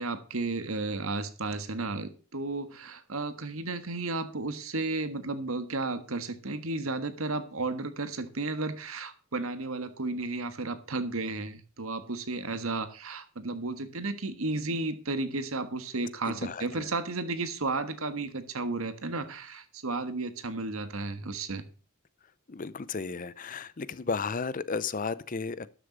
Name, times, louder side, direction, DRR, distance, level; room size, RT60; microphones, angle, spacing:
voice 1, 0.0-21.6, right 3 dB, 70° right, 11 dB, 1.4 m, -33 dB
voice 2, 16.3-16.9 22.5-25.7, left 4 dB, 40° left, 17 dB, 0.5 m, -34 dB
12.5 x 6.8 x 5.1 m, 0.38 s
head